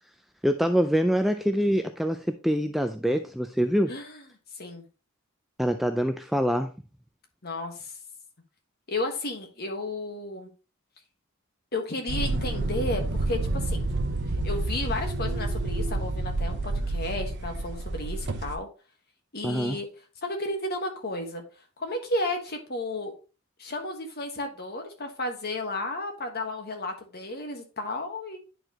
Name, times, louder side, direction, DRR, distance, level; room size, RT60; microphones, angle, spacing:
voice 1, 0.4-2.2 2.4-3.9 5.6-6.7 19.4-19.8, equal, ahead, 7 dB, 0.3 m, -25 dB
voice 2, 3.9-4.2 4.5-4.8 7.4-7.9 8.9-10.5 11.7-13.9 14.4-18.7 19.3-19.9 20.2-21.4 21.8-23.1 23.6-28.4, left 2 dB, 45° left, 4 dB, 1.4 m, -33 dB
sound 1, 12.1-18.6, right 2 dB, 50° right, 0.9 m, -29 dB
10.0 x 4.5 x 2.9 m, 0.33 s
head